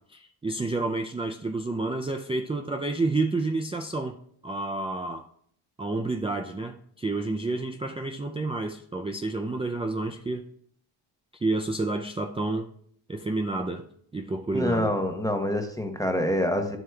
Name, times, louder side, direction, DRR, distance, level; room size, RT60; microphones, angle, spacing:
voice 1, 0.1-4.2 4.4-5.2 5.8-10.4 11.4-12.7 13.1-14.9, right 2 dB, 15° right, 0.4 m, -29 dB
voice 2, 14.5-16.8, left 1 dB, 5° left, 0.9 m, -26 dB
10.5 x 7.8 x 2.3 m
cardioid pair, 95°, 48 cm